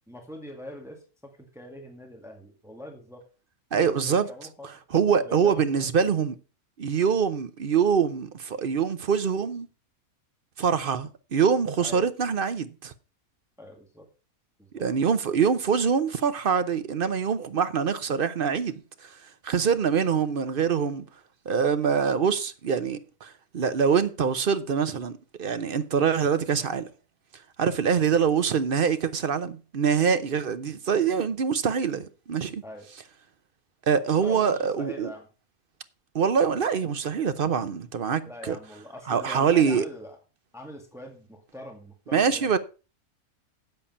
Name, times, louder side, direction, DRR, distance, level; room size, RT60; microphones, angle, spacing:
voice 1, 0.1-3.2 3.7-4.7 5.2-5.9 11.8-12.0 13.6-14.1 14.6-14.8 32.6-32.9 34.2-35.3 38.3-40.2 40.5-42.6, left 1 dB, ahead, 2.0 m, -43 dB
voice 2, 3.7-4.3 4.9-6.4 6.8-9.7 10.6-12.9 14.7-21.1 21.5-26.9 27.6-32.6 33.9-35.1 36.1-38.6 39.1-39.9 42.1-42.6, right 6 dB, 50° right, 0.7 m, -24 dB
8.7 x 7.8 x 5.5 m
omnidirectional pair, 1.5 m